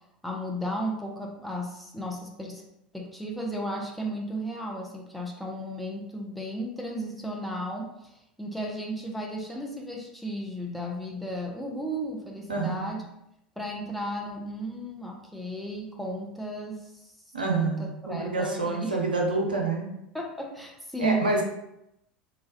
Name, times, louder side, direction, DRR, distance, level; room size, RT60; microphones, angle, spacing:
voice 1, 0.2-2.6 2.9-7.9 8.4-13.0 13.6-16.9 17.5-19.0 20.1-21.3, equal, ahead, -1 dB, 0.6 m, -34 dB
voice 2, 12.5-12.9 17.3-19.9 21.0-21.4, right 3 dB, 85° right, 0 dB, 0.5 m, -27 dB
3.1 x 2.3 x 2.6 m, 0.82 s
figure-of-eight pair, 75°, 5 cm